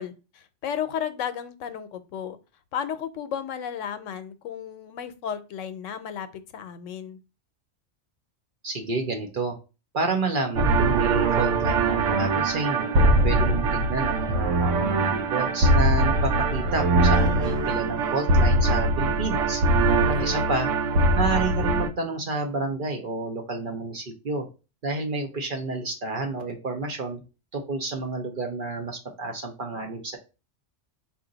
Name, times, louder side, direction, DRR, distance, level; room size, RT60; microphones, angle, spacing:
voice 1, 0.0-2.4 2.7-7.2 19.9-20.5, left 8 dB, 85° left, 11 dB, 0.9 m, -34 dB
voice 2, 8.6-9.6 9.9-13.0 13.2-19.6 20.2-20.7 21.1-24.5 24.8-27.2 27.5-30.2, right 3 dB, 50° right, 3 dB, 0.8 m, -29 dB
sound 1, 10.6-21.9, right 2 dB, 80° right, 1.0 m, -22 dB
4.3 x 2.5 x 3.9 m, 0.31 s
omnidirectional pair, 1.3 m